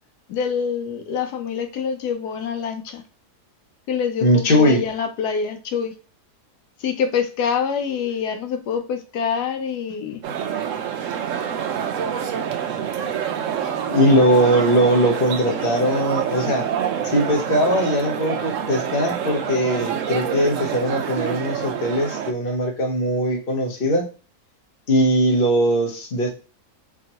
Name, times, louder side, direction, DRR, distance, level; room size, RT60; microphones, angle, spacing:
voice 1, 0.3-3.0 3.9-5.9 6.8-10.2, left 7 dB, 85° left, 6 dB, 1.2 m, -25 dB
voice 2, 4.2-4.8 13.9-16.7 17.0-24.1 24.9-26.3, equal, 40° left, 1 dB, 1.1 m, -20 dB
sound 1, 10.2-22.3, right 8 dB, 65° right, 0.8 m, -27 dB
4.5 x 3.0 x 2.7 m, 0.35 s
omnidirectional pair, 1.7 m